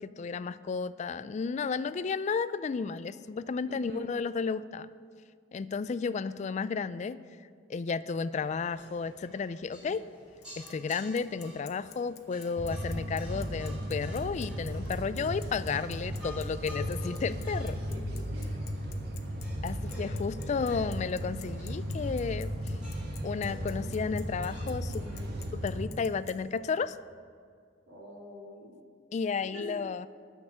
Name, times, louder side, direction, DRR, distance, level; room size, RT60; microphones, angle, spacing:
voice 1, 0.0-4.9 5.5-7.2 7.7-10.0 10.6-17.8 19.6-22.5 23.2-25.0 25.5-27.0 29.1-30.1, left 5 dB, 35° left, 16 dB, 0.3 m, -33 dB
voice 2, 3.7-4.1 9.9-10.0 17.9-18.6 25.0-25.4 27.9-28.8 29.4-29.8, equal, 80° right, -4 dB, 3.3 m, -47 dB
sound 1, 8.3-25.5, left 1 dB, 5° right, 2.9 m, -52 dB
Bicycle, 10.4-26.3, left 12 dB, 60° left, 0.8 m, -50 dB
sound 2, 12.6-25.8, equal, 55° right, 1.2 m, -36 dB
9.8 x 6.5 x 8.4 m, 2.1 s
head